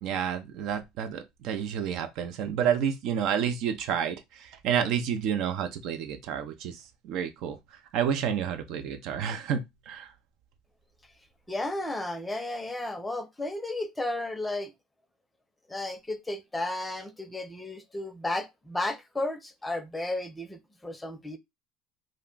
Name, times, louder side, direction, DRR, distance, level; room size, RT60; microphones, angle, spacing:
voice 1, 0.0-7.6 7.9-10.1, right 8 dB, 65° right, 0.5 m, -30 dB
voice 2, 11.5-14.7 15.7-21.4, left 2 dB, 10° left, 0.6 m, -33 dB
2.4 x 2.2 x 3.7 m
hypercardioid pair, 75°, 0 cm